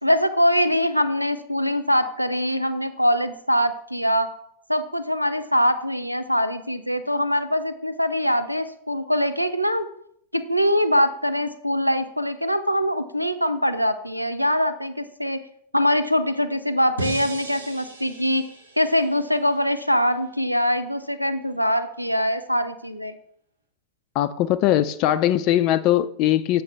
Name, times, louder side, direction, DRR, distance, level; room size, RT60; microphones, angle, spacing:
voice 1, 0.0-4.3 4.7-9.9 10.3-15.4 15.7-18.5 18.8-23.2, equal, 90° right, 10 dB, 0.4 m, -23 dB
sound 1, 17.0-20.1, right 1 dB, 75° right, 1.1 m, -37 dB
voice 2, 24.2-26.6, left 12 dB, 40° left, 12 dB, 0.3 m, -20 dB
8.0 x 5.4 x 3.4 m, 0.70 s
figure-of-eight pair, 90°, 0 cm